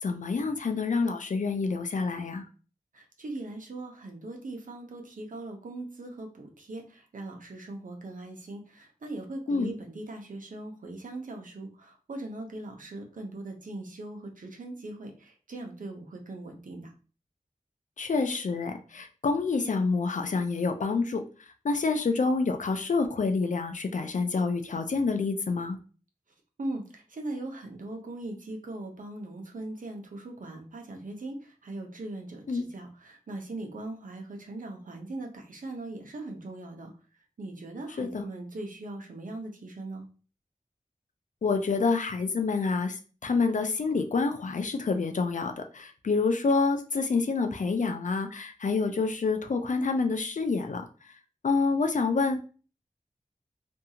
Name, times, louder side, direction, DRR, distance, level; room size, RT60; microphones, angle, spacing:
voice 1, 0.0-2.4 9.5-9.7 18.0-21.2 21.6-25.8 32.5-32.7 38.0-38.3 41.4-50.8 51.4-52.4, left 4 dB, 65° left, 6 dB, 0.4 m, -27 dB
voice 2, 2.9-16.9 26.6-36.9 37.4-40.1, right 2 dB, 75° right, 2 dB, 0.7 m, -40 dB
2.6 x 2.3 x 2.8 m, 0.37 s
cardioid pair, 40°, 14 cm